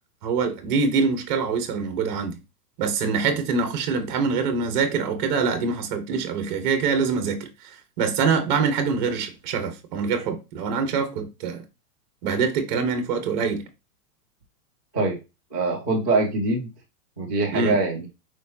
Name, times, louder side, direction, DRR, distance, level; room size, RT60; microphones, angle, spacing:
voice 1, 0.2-2.4 2.8-7.5 8.0-11.6 12.2-13.6 17.5-17.8, right 5 dB, 30° right, 1.1 m, -24 dB
voice 2, 15.5-16.7 17.2-18.1, right 3 dB, 15° left, 0.4 m, -23 dB
4.7 x 4.1 x 2.7 m
supercardioid pair, 175°, 47 cm